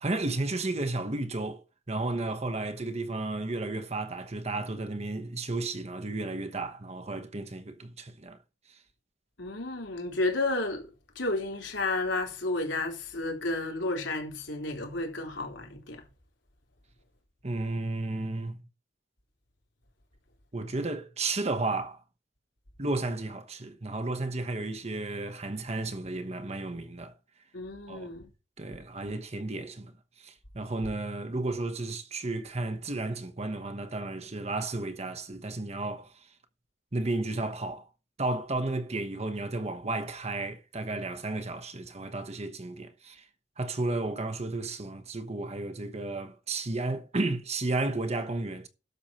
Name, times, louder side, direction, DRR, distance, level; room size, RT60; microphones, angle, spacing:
voice 1, 0.0-8.4 8.7-8.8 17.4-18.7 20.5-22.0 22.8-27.1 27.9-28.1 28.6-36.3 36.9-37.9 38.2-43.3 43.6-48.7, right 2 dB, 35° right, 1.1 m, -33 dB
voice 2, 9.4-10.9 11.2-16.0 27.5-28.3, left 2 dB, 80° left, 3.7 m, -32 dB
12.0 x 7.0 x 4.4 m
head